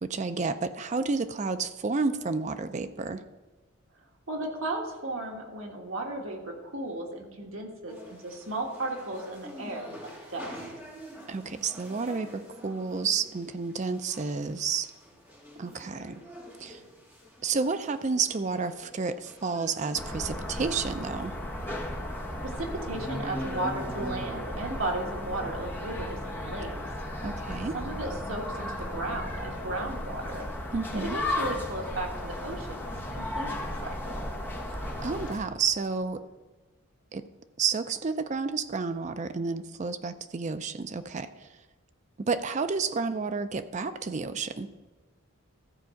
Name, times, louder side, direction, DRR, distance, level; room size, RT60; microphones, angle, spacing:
voice 1, 0.0-3.2 11.3-14.9 15.6-16.2 16.6-16.8 17.4-21.3 27.2-27.7 30.7-31.2 35.0-36.2 37.1-37.2 37.6-41.5 42.2-44.7, right 4 dB, 35° right, 10 dB, 0.4 m, -30 dB
voice 2, 4.3-10.5 22.4-26.8 27.7-30.5 30.9-34.3, right 2 dB, 70° right, 1 dB, 1.6 m, -35 dB
sound 1, 7.9-20.1, equal, 10° right, 2.6 m, -48 dB
sound 2, 19.9-35.3, left 1 dB, 10° left, 1.2 m, -35 dB
sound 3, 34.5-36.2, left 2 dB, 70° left, 1.0 m, -51 dB
14.0 x 4.6 x 6.4 m, 1.2 s
head